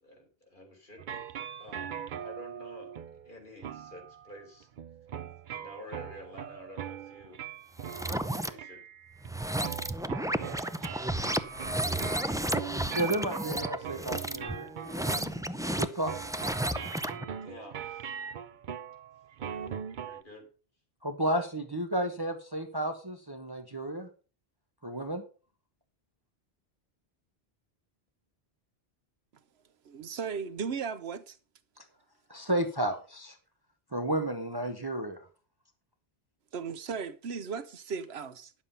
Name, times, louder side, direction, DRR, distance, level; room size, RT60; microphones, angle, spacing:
voice 1, 0.0-2.9 3.2-4.7 5.5-7.4 8.2-8.8 10.0-10.6 17.4-18.2 20.0-20.5, left 1 dB, 50° left, 3.8 m, -50 dB
sound 1, 1.0-9.3 9.6-20.2, right 8 dB, 55° right, 0.7 m, -41 dB
sound 2, 7.8-8.5 9.2-17.2, right 1 dB, 5° right, 0.3 m, -32 dB
voice 2, 12.9-14.7 15.7-16.2 21.0-24.1 24.8-25.2 32.3-33.3 33.9-35.2, right 1 dB, 25° right, 1.0 m, -32 dB
voice 3, 29.8-31.4 36.5-38.5, right 6 dB, 75° right, 1.1 m, -36 dB
10.5 x 7.4 x 5.5 m
omnidirectional pair, 1.1 m